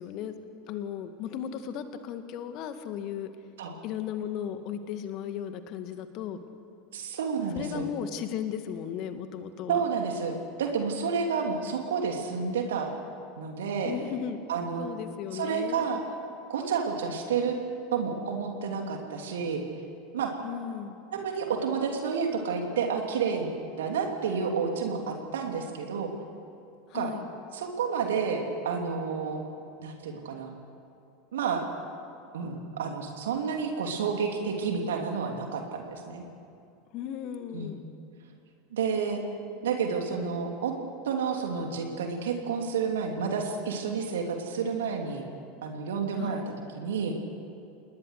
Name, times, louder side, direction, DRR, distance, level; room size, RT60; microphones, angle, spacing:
voice 1, 0.0-3.3 3.8-6.4 7.5-9.8 13.8-14.5 14.8-15.9 20.4-21.0 26.9-27.2 36.9-37.8 46.2-46.5, left 9 dB, 50° left, 9 dB, 1.9 m, -36 dB
voice 2, 6.9-7.9 9.7-12.9 13.4-13.9 14.5-14.9 15.3-16.0 16.5-17.6 17.9-19.6 20.1-20.3 21.1-23.5 23.8-26.1 26.9-27.1 27.5-29.4 29.8-30.5 31.3-31.6 32.3-36.2 37.5-37.8 38.7-39.2 39.6-40.7 41.0-45.2 45.6-46.4 46.7-47.1, right 6 dB, 70° right, 3 dB, 2.9 m, -30 dB
28.0 x 20.0 x 6.6 m, 2.6 s
figure-of-eight pair, 80°, 0 cm